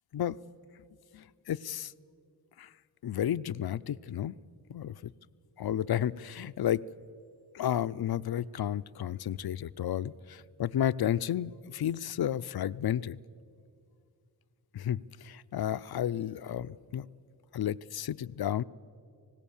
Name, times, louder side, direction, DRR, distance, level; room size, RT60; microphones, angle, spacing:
voice 1, 1.1-1.9 2.6-2.7 3.0-4.3 4.7-5.1 5.6-6.8 7.5-13.2 14.7-17.1 17.5-18.6, left 10 dB, 65° left, 16 dB, 0.6 m, -32 dB
26.0 x 18.0 x 7.2 m, 2.3 s
cardioid pair, 45°, 40 cm